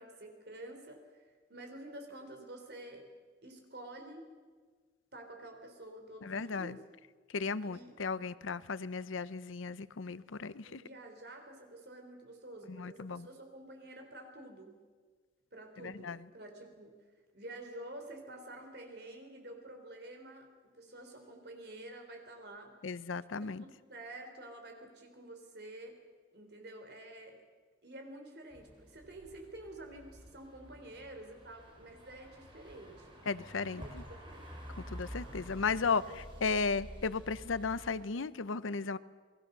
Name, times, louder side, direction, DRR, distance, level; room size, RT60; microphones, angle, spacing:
voice 1, 0.0-3.1 3.4-4.3 5.1-6.8 7.6-8.1 10.6-14.8 15.5-17.0 17.3-20.5 20.7-22.7 23.3-26.0 26.3-27.4 27.8-33.2 33.8-33.9 34.2-34.4 35.8-36.2, right 1 dB, 55° right, 4 dB, 3.8 m, -49 dB
voice 2, 6.2-6.8 7.3-10.8 12.7-13.3 15.8-16.2 22.8-23.6 33.3-34.0 34.9-36.0 36.4-39.0, left 4 dB, 85° left, 16 dB, 0.7 m, -35 dB
sound 1, 28.5-38.0, equal, 25° right, 4.7 m, -50 dB
28.0 x 21.0 x 6.8 m, 1.5 s
head